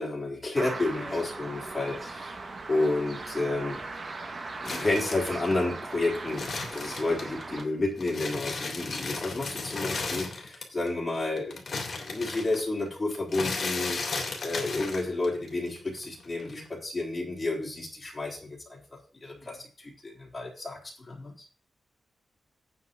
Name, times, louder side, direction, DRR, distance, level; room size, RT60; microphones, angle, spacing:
voice 1, 0.0-2.4 2.7-3.8 4.6-11.6 12.1-18.8 19.2-21.5, left 2 dB, 25° left, -1 dB, 3.7 m, -31 dB
sound 1, 0.5-7.6, right 3 dB, 35° right, 1.4 m, -39 dB
voice 2, 0.9-1.3 16.4-16.7 19.3-19.6, left 1 dB, 5° right, -3 dB, 2.6 m, -44 dB
sound 2, 4.7-7.6 8.0-10.9 11.1-15.5 15.8-16.7, left 3 dB, 45° left, 3.1 m, -35 dB
9.1 x 5.8 x 7.6 m, 0.41 s
wide cardioid pair, 150°, 0 cm